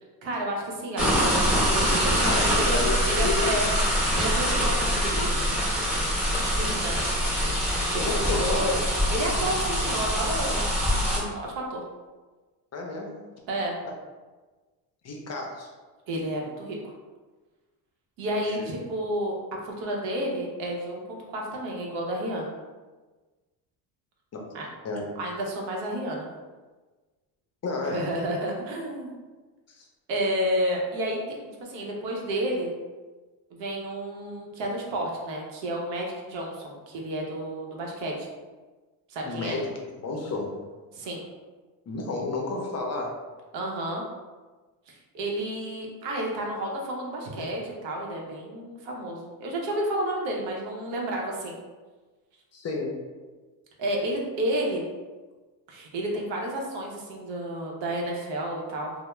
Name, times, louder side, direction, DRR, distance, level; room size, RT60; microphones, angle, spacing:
voice 1, 0.2-3.6 4.1-5.5 6.3-7.0 8.0-8.7 9.1-10.6 10.9-11.8 13.5-13.8 16.1-16.9 18.2-19.4 19.6-22.5 24.5-24.7 25.2-26.3 27.9-29.2 30.1-32.7 33.5-38.3 39.1-39.6 40.9-41.3 43.5-44.0 44.9-51.6 53.8-54.8 55.7-58.9, right 1 dB, 75° right, -1 dB, 0.7 m, -31 dB
sound 1, 1.0-11.2, equal, ahead, 0.8 m, -24 dB
voice 2, 2.2-3.5 8.0-8.8 12.7-13.1 15.0-15.7 18.4-18.6 24.3-24.4 24.8-25.1 27.6-28.1 29.7-29.9 39.2-39.7 40.0-40.5 41.9-43.2 52.5-53.0, left 3 dB, 35° left, 0 dB, 0.5 m, -31 dB
2.2 x 2.0 x 3.0 m, 1.3 s
supercardioid pair, 85°, 44 cm